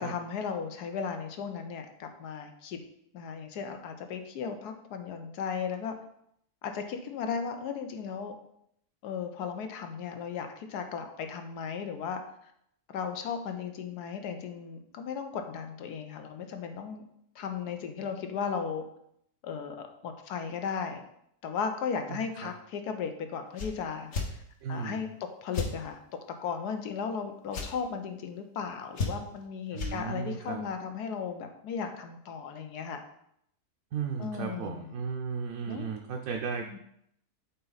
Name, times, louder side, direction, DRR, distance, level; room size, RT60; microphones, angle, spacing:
voice 1, 0.0-2.8 3.1-5.9 6.6-8.3 9.0-12.2 12.9-17.0 17.3-18.9 19.4-21.0 21.4-24.1 24.7-25.1 25.4-26.0 26.4-33.0 34.2-34.9 35.7-36.0 36.6-36.8, left 6 dB, 85° left, 6 dB, 1.3 m, -36 dB
voice 2, 22.1-22.5 24.6-25.0 29.7-30.6 33.9-36.8, right 6 dB, 65° right, 2 dB, 1.0 m, -35 dB
sound 1, 23.5-23.7 24.1-24.3 25.5-25.7 27.5-27.7 28.9-29.4 29.7-29.9, left 4 dB, 55° left, 1.3 m, -32 dB
8.3 x 3.9 x 4.0 m, 0.73 s
omnidirectional pair, 1.7 m